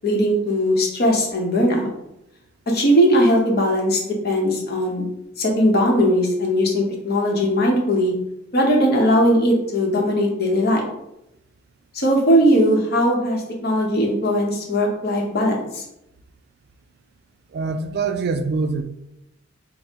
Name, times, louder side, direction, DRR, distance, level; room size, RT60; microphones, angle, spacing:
voice 1, 0.0-1.9 2.7-5.1 5.4-8.1 8.5-10.8 11.9-15.8, equal, 50° left, 0 dB, 0.9 m, -19 dB
voice 2, 17.5-18.8, right 4 dB, 55° right, 8 dB, 0.3 m, -24 dB
4.1 x 2.0 x 3.5 m, 0.83 s
head